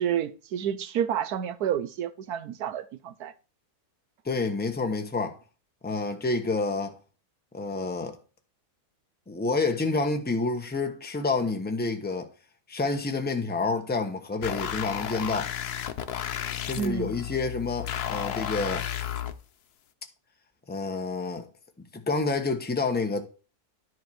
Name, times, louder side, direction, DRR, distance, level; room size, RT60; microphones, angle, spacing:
voice 1, 0.0-3.3 16.8-17.1, right 9 dB, 80° right, 1.3 m, -29 dB
voice 2, 4.2-5.4 5.8-6.9 7.5-8.2 9.3-12.3 12.7-15.5 16.6-18.9 20.7-21.5 21.9-23.2, left 3 dB, 10° left, 0.9 m, -28 dB
sound 1, 14.4-19.3, left 10 dB, 85° left, 1.3 m, -33 dB
10.5 x 4.6 x 6.3 m
omnidirectional pair, 1.6 m